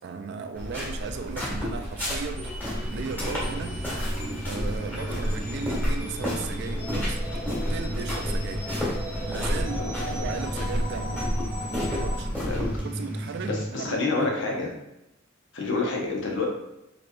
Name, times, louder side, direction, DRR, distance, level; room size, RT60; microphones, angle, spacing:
voice 1, 0.0-2.6 2.9-3.8 4.4-7.2 7.7-8.7 9.2-11.2 11.6-12.3 12.8-14.3, right 5 dB, 55° right, 7 dB, 0.3 m, -36 dB
sound 1, 0.5-12.8, equal, 10° left, 1.3 m, -31 dB
sound 2, 2.4-12.3, equal, 35° left, 1.1 m, -40 dB
sound 3, 2.7-13.7, right 1 dB, 5° right, 0.8 m, -37 dB
voice 2, 13.5-14.7 15.5-16.4, left 3 dB, 60° left, -1 dB, 0.9 m, -28 dB
4.4 x 3.0 x 2.6 m, 0.89 s
head